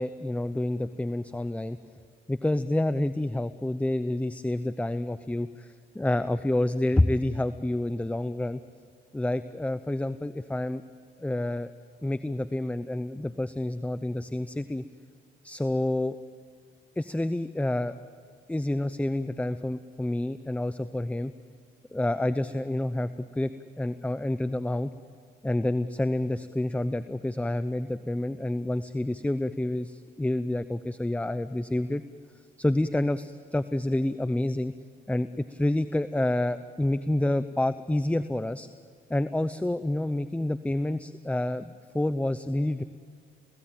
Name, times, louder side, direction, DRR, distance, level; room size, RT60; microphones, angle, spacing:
voice 1, 0.0-1.8 2.3-8.6 9.1-10.8 11.2-11.7 12.0-14.8 15.4-16.2 17.0-17.9 18.5-21.3 21.9-23.5 23.8-24.9 25.4-32.0 32.6-34.7 35.1-38.7 39.1-42.8, left 1 dB, 5° left, 12 dB, 0.7 m, -28 dB
28.0 x 18.0 x 8.8 m, 2.1 s
cardioid pair, 90°, 20 cm